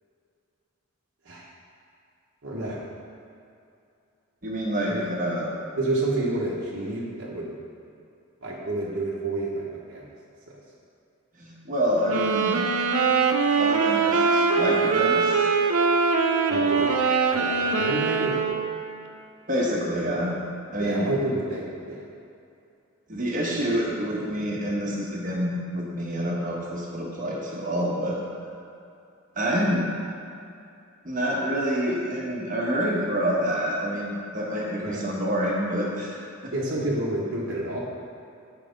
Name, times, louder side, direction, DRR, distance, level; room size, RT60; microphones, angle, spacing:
voice 1, 2.4-2.8 4.9-5.0 5.8-7.5 8.4-10.0 16.5-16.9 17.3-18.5 20.8-22.1 34.8-35.0 36.5-37.8, right 2 dB, 55° right, -7 dB, 1.1 m, -29 dB
voice 2, 4.4-5.5 11.4-12.6 13.6-15.5 19.5-20.4 20.7-21.1 23.1-28.2 29.3-29.9 31.0-36.5, equal, 35° right, -4 dB, 1.2 m, -27 dB
sound 1, 12.0-18.9, right 5 dB, 90° right, 0.6 m, -22 dB
7.5 x 4.9 x 5.2 m, 2.6 s
head